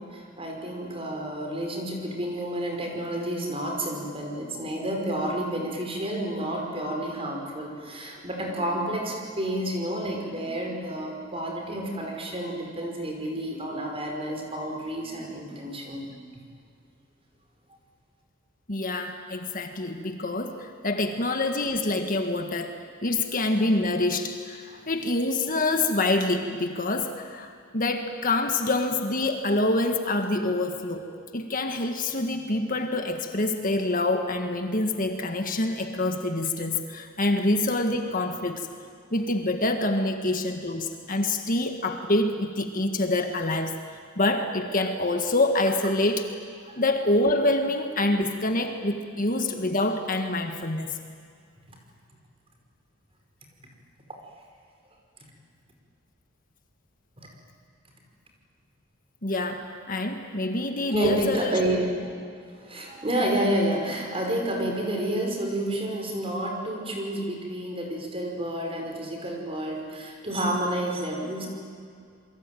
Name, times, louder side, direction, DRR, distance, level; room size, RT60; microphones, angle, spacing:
voice 1, 0.0-16.2 24.7-24.8 57.2-57.3 60.9-61.9 62.2-71.5, right 1 dB, 25° right, 1 dB, 5.2 m, -30 dB
voice 2, 18.7-38.7 39.1-43.8 44.1-46.3 46.8-51.0 59.2-61.6, left 2 dB, 40° left, 5 dB, 1.7 m, -26 dB
28.0 x 23.0 x 9.2 m, 2.2 s
head